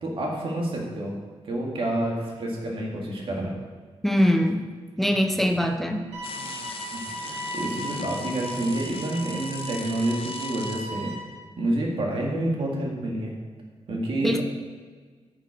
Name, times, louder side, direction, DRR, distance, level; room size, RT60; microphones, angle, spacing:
voice 1, 0.0-1.2 1.4-3.5 6.9-11.2 11.6-13.3 13.9-14.4, right 1 dB, 60° right, -1 dB, 2.0 m, -28 dB
voice 2, 4.0-4.6 5.0-6.0 14.2-14.4, equal, ahead, 5 dB, 0.6 m, -22 dB
sound 1, 6.1-11.1, right 2 dB, 80° right, 2.6 m, -36 dB
sound 2, 6.2-10.8, left 6 dB, 60° left, 0.7 m, -40 dB
10.5 x 6.0 x 5.0 m, 1.5 s
wide cardioid pair, 165°, 11 cm